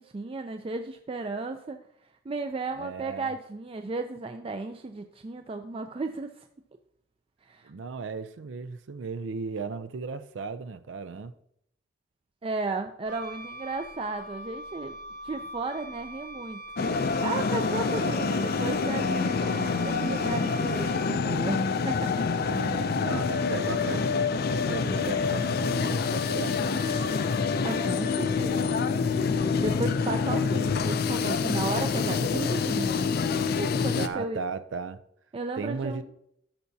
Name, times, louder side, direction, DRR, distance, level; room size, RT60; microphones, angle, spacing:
voice 1, 0.0-1.8 2.3-6.5 7.4-7.7 12.4-15.0 15.2-16.6 17.2-22.1 27.6-28.8 29.6-33.1 33.6-34.4 35.3-36.0, right 3 dB, 30° right, 0.4 m, -34 dB
voice 2, 2.8-3.3 7.6-11.3 22.4-27.3 33.9-35.0 35.6-36.0, right 4 dB, 90° right, 0.5 m, -36 dB
Wind instrument woodwind instrument, 13.1-21.4, right 1 dB, 50° right, 0.9 m, -43 dB
sound 1, 16.8-34.1, left 5 dB, 55° left, 0.4 m, -27 dB
13.0 x 5.7 x 2.7 m
head